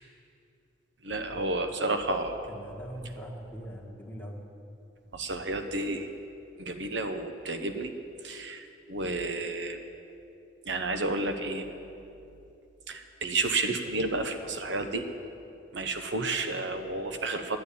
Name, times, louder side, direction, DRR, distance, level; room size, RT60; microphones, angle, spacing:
voice 1, 1.0-2.5 5.1-6.1 6.6-7.9 8.2-9.8 10.7-11.6 12.9-15.0 15.7-17.6, right 2 dB, 85° right, 7 dB, 0.9 m, -31 dB
voice 2, 2.5-4.4, equal, 10° left, -2 dB, 1.6 m, -41 dB
11.5 x 9.5 x 8.5 m, 2.7 s
head